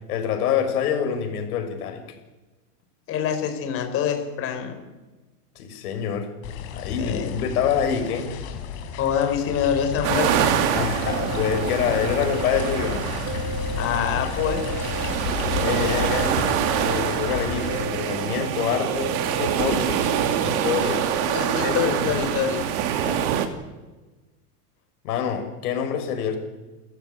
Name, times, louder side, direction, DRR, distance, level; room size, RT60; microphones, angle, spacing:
voice 1, 0.1-2.0 5.6-6.3 6.7-8.3 10.7-13.0 15.6-16.4 16.8-21.1 21.6-22.2 23.0-23.3 25.0-26.4, left 8 dB, 65° left, 6 dB, 5.9 m, -26 dB
voice 2, 3.1-4.8 7.0-7.3 9.0-10.5 13.8-14.6 21.3-22.7, left 8 dB, 30° left, 6 dB, 4.4 m, -25 dB
sound 1, 6.4-17.8, left 7 dB, 45° left, 4.1 m, -32 dB
sound 2, 10.0-23.5, right 9 dB, 45° right, 2.7 m, -25 dB
sound 3, 11.0-12.9 13.3-15.1 15.5-17.3 17.7-19.6 19.9-21.8, right 3 dB, 25° right, 1.6 m, -35 dB
28.5 x 15.0 x 9.0 m, 1.2 s
supercardioid pair, 155°, 47 cm